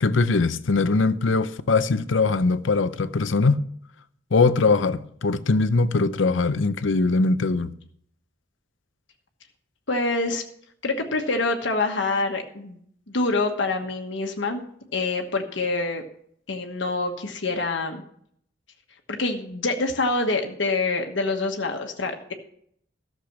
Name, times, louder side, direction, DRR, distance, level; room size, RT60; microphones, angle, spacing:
voice 1, 0.0-3.6 4.3-7.7, left 3 dB, 90° left, 0.6 m, -21 dB
voice 2, 9.9-10.4 10.8-12.8 13.1-14.6 14.9-16.0 16.5-18.0 19.1-22.3, left 3 dB, 75° left, 1.3 m, -26 dB
13.5 x 6.8 x 5.9 m
head